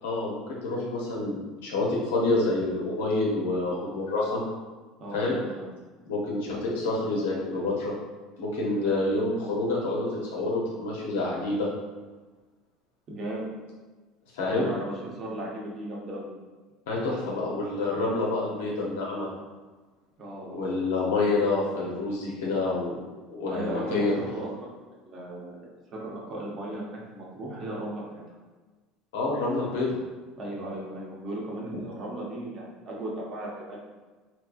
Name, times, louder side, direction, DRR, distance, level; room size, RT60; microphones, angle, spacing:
voice 1, 0.0-4.5 5.1-5.4 6.1-7.9 8.4-11.7 14.3-14.7 16.9-19.3 20.5-23.0 23.3-24.2 29.1-29.9, left 2 dB, 85° left, -3 dB, 0.9 m, -28 dB
voice 2, 5.0-5.6 8.8-9.0 13.1-13.5 14.5-16.3 20.2-20.6 23.5-24.7 25.0-28.2 30.4-33.8, right 1 dB, 45° right, -3 dB, 1.0 m, -36 dB
3.3 x 3.0 x 2.5 m, 1.3 s
supercardioid pair, 90°, 0 cm